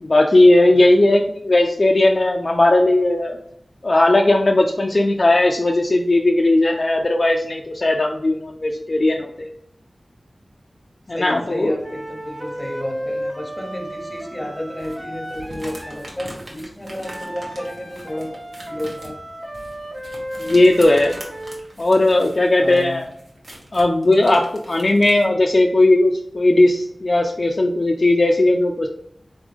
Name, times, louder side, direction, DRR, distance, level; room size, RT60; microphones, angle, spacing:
voice 1, 0.0-3.4 3.8-9.5 11.1-11.8 20.4-21.2 21.8-23.0 23.7-28.9, left 2 dB, 50° left, 1 dB, 0.4 m, -17 dB
voice 2, 0.6-0.9 11.1-19.2 22.6-23.1, left 1 dB, 15° left, 2 dB, 1.0 m, -32 dB
sound 1, 11.8-16.1 17.0-21.7, equal, 15° right, 0.9 m, -33 dB
sound 2, 14.8-25.2, right 1 dB, 70° right, 1.2 m, -41 dB
4.3 x 3.5 x 3.4 m, 0.72 s
wide cardioid pair, 75°, 0 cm